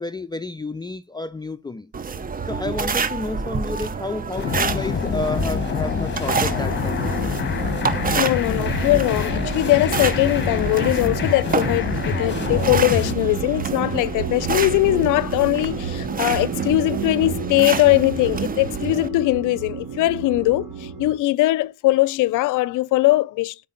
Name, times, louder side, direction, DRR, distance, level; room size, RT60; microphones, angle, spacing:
voice 1, 0.0-1.9 2.5-7.4, left 3 dB, 15° left, 0.5 m, -30 dB
sound 1, 1.9-19.1, right 5 dB, 30° right, 0.7 m, -28 dB
sound 2, 4.4-13.1, left 6 dB, 35° left, 1.2 m, -26 dB
sound 3, 6.4-21.1, right 5 dB, 75° right, 3.4 m, -32 dB
voice 2, 8.2-23.7, left 18 dB, 85° left, 0.5 m, -20 dB
5.2 x 4.8 x 3.8 m
cardioid pair, 90°, 30 cm